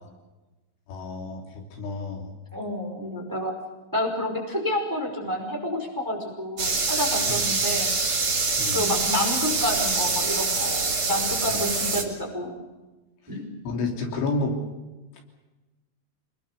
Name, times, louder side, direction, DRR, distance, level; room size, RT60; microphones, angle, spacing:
voice 1, 0.9-2.3 7.3-7.5 8.6-8.9 11.5-11.6 13.6-14.6, left 3 dB, 70° left, 2 dB, 5.6 m, -30 dB
voice 2, 2.5-3.5 3.9-7.9 8.7-12.6 13.3-13.5, left 1 dB, 5° right, 2 dB, 4.4 m, -29 dB
sound 1, 6.6-12.0, right 4 dB, 30° right, 1.8 m, -25 dB
27.0 x 21.0 x 6.9 m, 1.1 s
omnidirectional pair, 5.8 m